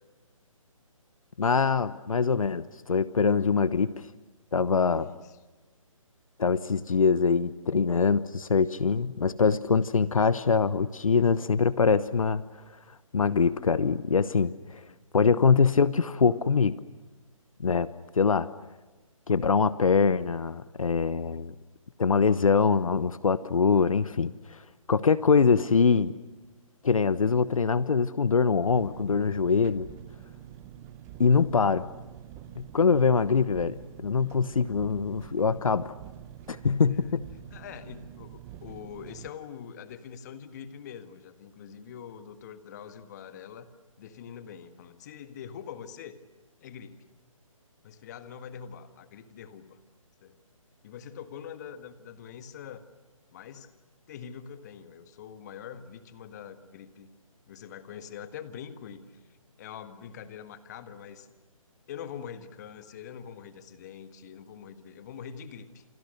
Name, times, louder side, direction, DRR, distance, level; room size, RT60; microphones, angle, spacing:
voice 1, 1.4-4.1 4.5-5.1 6.4-12.4 13.1-14.8 15.1-16.7 17.6-17.9 18.1-18.5 19.3-21.5 22.0-24.6 24.9-26.1 26.8-29.9 31.2-31.9 32.6-35.9 36.5-37.3, left 5 dB, 70° left, 15 dB, 1.0 m, -23 dB
voice 2, 4.9-5.4 14.9-15.0 36.9-37.2 37.5-43.7 44.0-46.2 46.6-47.0 47.8-49.8 50.2-50.4 50.8-52.8 53.3-53.7 54.1-57.1 57.5-59.2 59.6-61.3 61.9-65.8, left 8 dB, 30° left, 9 dB, 1.7 m, -44 dB
Engine, 28.7-39.3, right 11 dB, 15° right, 0.9 m, -46 dB
29.0 x 27.5 x 6.7 m, 1.2 s
figure-of-eight pair, 150°, 18 cm